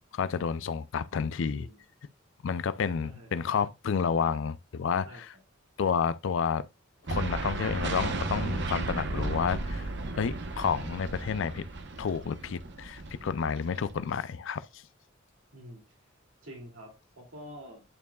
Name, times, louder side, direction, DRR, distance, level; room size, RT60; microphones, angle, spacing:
voice 1, 0.1-1.7 2.4-5.3 5.8-6.7 7.1-9.9 10.2-11.7 12.0-14.8, left 6 dB, 65° left, 0.4 m, -30 dB
voice 2, 1.4-1.8 3.0-3.5 5.0-5.2 15.5-15.8 16.4-17.8, equal, 80° right, 2.5 m, -47 dB
sound 1, 7.1-14.1, right 2 dB, 60° right, 0.9 m, -34 dB
11.0 x 4.6 x 2.3 m
head